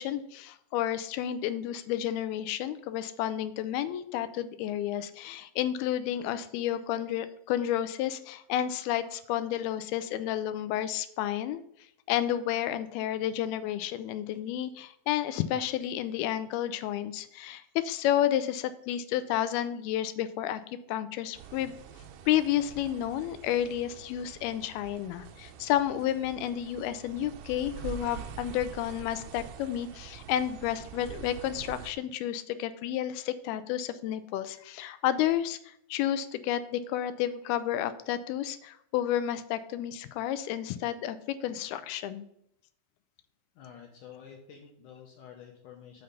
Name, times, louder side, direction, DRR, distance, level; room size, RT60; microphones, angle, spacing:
voice 1, 0.0-11.6 12.1-21.8 22.3-42.3, left 11 dB, 85° left, 12 dB, 2.5 m, -31 dB
sound 1, 21.4-31.9, right 9 dB, 80° right, 2.7 m, -45 dB
voice 2, 43.6-46.0, left 8 dB, 70° left, 1 dB, 2.3 m, -49 dB
7.9 x 5.5 x 5.2 m, 0.74 s
omnidirectional pair, 4.4 m